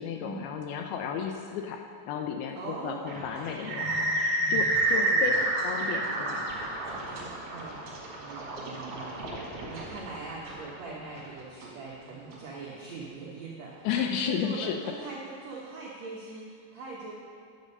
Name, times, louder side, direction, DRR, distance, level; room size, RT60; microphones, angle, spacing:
voice 1, 0.0-1.8 2.1-5.3 5.6-6.5 13.8-14.8, left 7 dB, 80° left, 3 dB, 2.3 m, -33 dB
voice 2, 2.5-3.2 4.9-5.6 7.0-13.9 14.2-17.1, right 3 dB, 90° right, -4 dB, 1.5 m, -42 dB
sound 1, 3.1-12.4, right 2 dB, 50° right, 1.7 m, -30 dB
10.5 x 7.4 x 5.3 m, 2.4 s
omnidirectional pair, 4.9 m